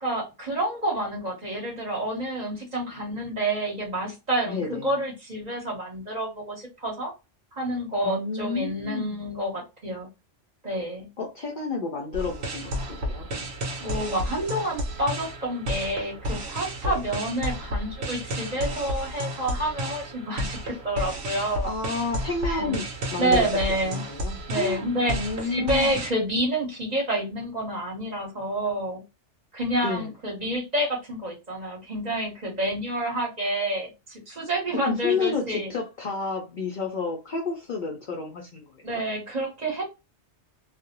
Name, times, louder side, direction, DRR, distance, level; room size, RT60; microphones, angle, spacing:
voice 1, 0.0-7.1 7.5-10.1 10.6-11.1 13.8-21.7 22.4-22.8 23.2-24.0 24.5-29.0 29.5-35.7 38.8-39.8, right 1 dB, 40° right, -1 dB, 0.9 m, -28 dB
voice 2, 4.5-4.9 8.0-9.3 11.2-13.5 16.8-17.0 21.6-26.0 29.8-30.1 34.8-39.0, left 4 dB, 55° left, -1 dB, 0.5 m, -31 dB
sound 1, 12.1-26.1, equal, 70° right, 0.9 m, -32 dB
2.4 x 2.0 x 2.8 m, 0.26 s
omnidirectional pair, 1.2 m